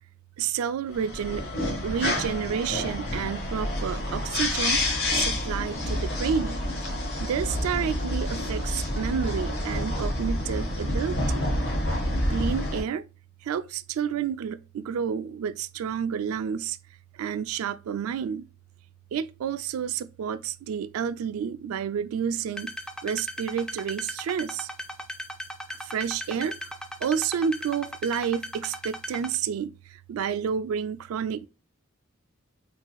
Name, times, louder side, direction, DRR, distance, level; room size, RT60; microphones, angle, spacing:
voice 1, 0.4-1.5 1.8-4.8 5.1-6.6 7.2-11.5 12.3-13.1 13.4-16.8 17.1-18.5 19.1-22.8 23.0-24.7 25.7-31.5, right 7 dB, 90° right, 0.3 m, -30 dB
sound 1, 0.9-12.8, left 1 dB, 50° left, 1.0 m, -28 dB
sound 2, 22.6-29.4, equal, 5° left, 0.3 m, -37 dB
4.5 x 2.8 x 2.3 m
head